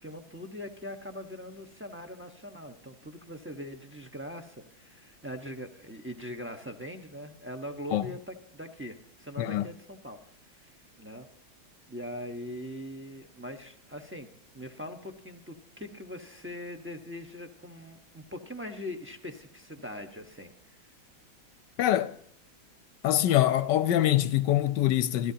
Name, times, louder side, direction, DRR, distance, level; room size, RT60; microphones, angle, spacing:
voice 1, 0.0-10.2 10.5-11.3 11.9-14.3 14.5-20.9, left 1 dB, 10° right, 0.6 m, -42 dB
voice 2, 21.8-22.2 23.0-25.3, left 13 dB, 70° left, 1.2 m, -24 dB
26.0 x 14.0 x 2.8 m
omnidirectional pair, 2.2 m